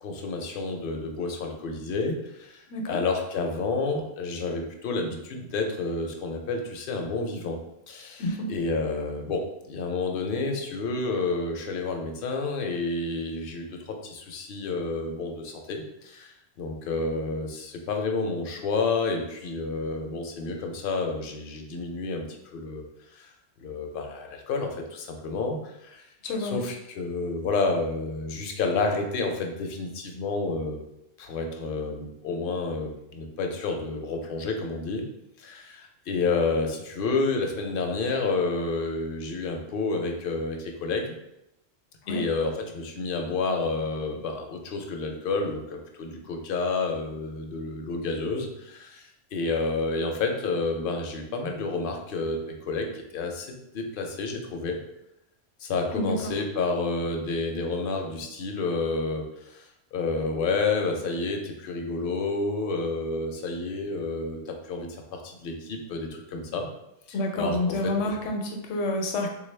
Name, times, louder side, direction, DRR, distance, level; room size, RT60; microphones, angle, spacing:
voice 1, 0.0-7.6 7.9-22.8 23.1-23.3 23.6-26.1 26.4-30.8 31.2-35.0 35.4-41.1 42.1-49.0 49.3-54.8 55.6-59.6 59.9-66.7 67.1-67.9, left 3 dB, 60° left, 3 dB, 0.6 m, -30 dB
voice 2, 26.2-26.6 42.1-42.2 55.9-56.3 67.1-69.3, left 1 dB, 85° left, 3 dB, 1.0 m, -28 dB
3.5 x 2.3 x 3.2 m, 0.85 s
omnidirectional pair, 1.2 m